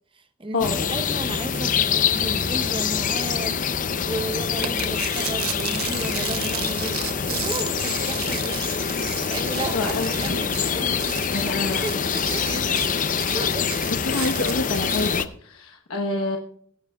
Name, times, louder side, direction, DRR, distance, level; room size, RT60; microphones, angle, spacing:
voice 1, 0.2-3.6 3.9-7.0 7.3-8.8 9.2-13.0 13.3-13.7 14.1-14.3, right 2 dB, 25° right, 0.8 m, -34 dB
sound 1, 0.6-15.2, left 6 dB, 40° left, 0.6 m, -25 dB
sound 2, 4.6-15.2, right 10 dB, 85° right, 1.1 m, -34 dB
voice 2, 9.7-10.2 11.3-11.8 13.9-16.4, left 2 dB, 70° left, 1.1 m, -27 dB
23.5 x 11.0 x 2.3 m
head